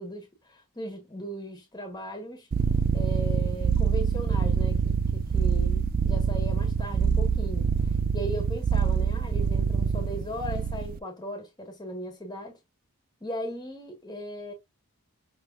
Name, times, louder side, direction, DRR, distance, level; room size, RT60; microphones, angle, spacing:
voice 1, 0.0-2.5 2.9-7.7 8.1-12.6 13.2-14.5, equal, 20° left, 1.3 m, -37 dB
sound 1, 2.5-11.0, right 6 dB, 40° right, 0.3 m, -25 dB
5.9 x 3.2 x 2.4 m
head